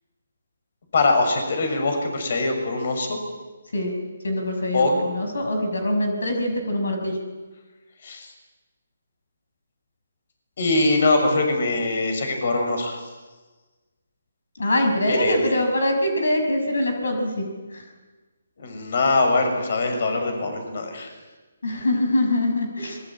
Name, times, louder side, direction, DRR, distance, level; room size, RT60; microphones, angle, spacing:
voice 1, 0.9-3.2 4.7-4.9 8.0-8.3 10.6-13.0 15.1-15.5 18.6-21.1, left 3 dB, 55° left, 5 dB, 6.7 m, -22 dB
voice 2, 4.2-7.2 14.6-17.5 17.7-17.8 21.6-23.0, left 1 dB, 80° left, 4 dB, 6.0 m, -23 dB
25.5 x 22.5 x 9.0 m, 1.3 s
hypercardioid pair, 155°, 0 cm